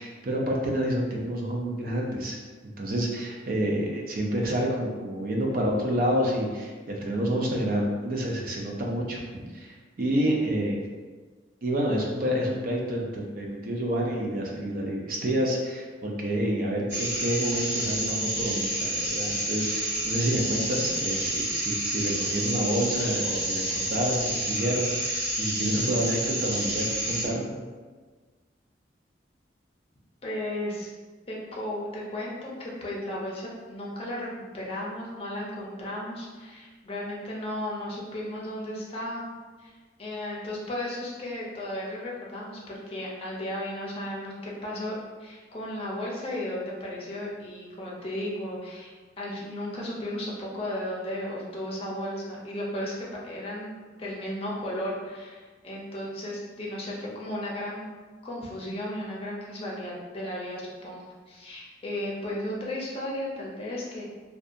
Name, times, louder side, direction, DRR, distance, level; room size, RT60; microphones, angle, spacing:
voice 1, 0.0-2.4 2.8-10.8 11.6-27.6, right 1 dB, 50° right, -1 dB, 0.4 m, -28 dB
sound 1, 16.9-27.3, right 1 dB, 75° right, 0.9 m, -29 dB
voice 2, 30.2-30.9 31.3-34.3 34.5-39.2 39.6-44.9 45.2-57.9 58.2-64.0, left 1 dB, 30° left, -5 dB, 0.5 m, -35 dB
2.7 x 2.2 x 2.5 m, 1.4 s
head